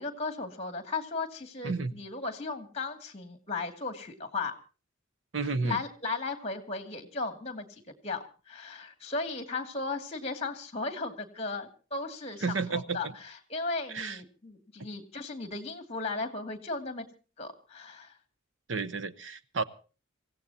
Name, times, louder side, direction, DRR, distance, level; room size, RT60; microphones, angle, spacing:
voice 1, 0.0-4.5 5.6-17.1 17.4-18.2, left 3 dB, 30° left, 6 dB, 2.3 m, -36 dB
voice 2, 5.3-5.8 12.4-13.1 13.9-14.2 18.7-19.6, right 4 dB, 65° right, 15 dB, 0.9 m, -31 dB
26.5 x 16.0 x 2.8 m, 0.35 s
head